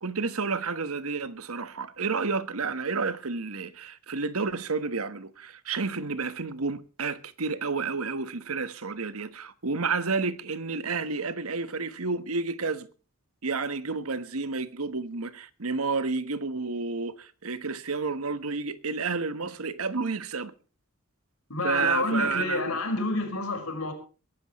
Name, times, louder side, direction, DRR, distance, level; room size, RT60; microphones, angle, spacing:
voice 1, 0.0-12.9 13.4-20.5 21.6-22.6, right 4 dB, 85° right, 1.3 m, -30 dB
voice 2, 21.5-23.9, left 2 dB, 90° left, 5.1 m, -29 dB
22.5 x 12.5 x 3.1 m
head